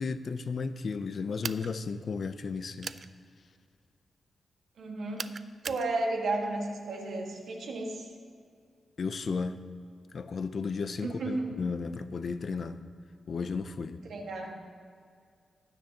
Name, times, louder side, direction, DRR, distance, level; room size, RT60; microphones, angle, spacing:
voice 1, 0.0-2.9 9.0-9.6 10.1-12.8 13.3-14.0, left 5 dB, 55° left, 0.5 m, -34 dB
sound 1, 1.4-1.7 2.8-3.1 5.2-5.9, right 5 dB, 50° right, 0.3 m, -37 dB
voice 2, 4.8-5.3 5.6-8.1 11.0-11.5 14.0-14.5, right 2 dB, 80° right, 1.6 m, -33 dB
15.5 x 10.0 x 2.9 m
wide cardioid pair, 105°, 0 cm